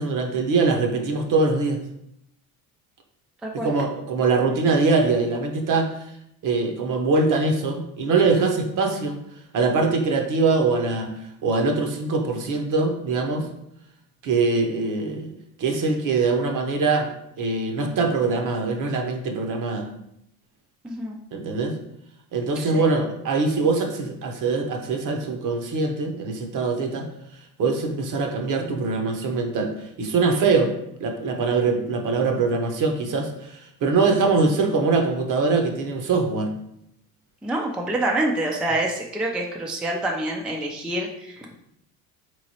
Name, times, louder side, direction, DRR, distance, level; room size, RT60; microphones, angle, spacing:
voice 1, 0.0-1.8 3.6-5.9 6.4-9.2 9.5-13.5 14.2-15.3 15.6-17.1 17.4-19.9 21.3-21.8 22.3-27.1 27.6-30.7 31.0-36.5, right 4 dB, 50° right, 3 dB, 0.8 m, -23 dB
voice 2, 20.8-21.2 22.6-23.0 37.4-41.6, right 1 dB, ahead, 0 dB, 0.4 m, -27 dB
3.7 x 3.1 x 2.8 m, 0.78 s
supercardioid pair, 80°, 41 cm